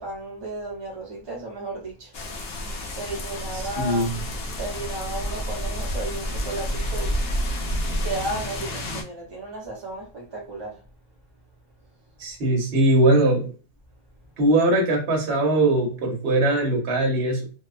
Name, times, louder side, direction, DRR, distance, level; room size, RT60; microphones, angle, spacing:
voice 1, 0.0-2.1 2.8-7.2 7.9-10.8, right 2 dB, 25° right, 0.5 m, -34 dB
sound 1, 2.1-9.0, equal, 65° left, 0.6 m, -29 dB
voice 2, 3.8-4.1 12.2-13.5 14.4-17.4, right 1 dB, 45° right, 0.9 m, -20 dB
2.7 x 2.2 x 2.4 m
omnidirectional pair, 1.7 m